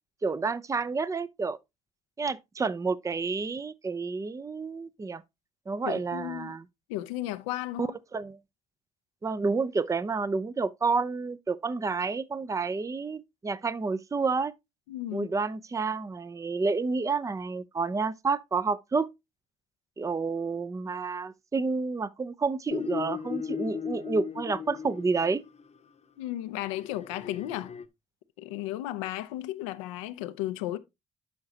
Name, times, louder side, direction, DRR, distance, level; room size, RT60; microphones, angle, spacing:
voice 1, 0.2-1.6 2.2-5.2 5.7-6.6 7.8-8.4 9.2-14.5 15.1-19.1 20.0-25.4, right 4 dB, 20° right, 0.5 m, -30 dB
voice 2, 5.8-6.5 6.9-7.9 14.9-15.3 26.2-27.7 28.4-30.8, left 15 dB, 90° left, 0.5 m, -34 dB
sound 1, 22.7-25.6 26.6-27.8, left 7 dB, 45° left, 0.8 m, -36 dB
11.5 x 4.8 x 2.8 m
hypercardioid pair, 50°, 16 cm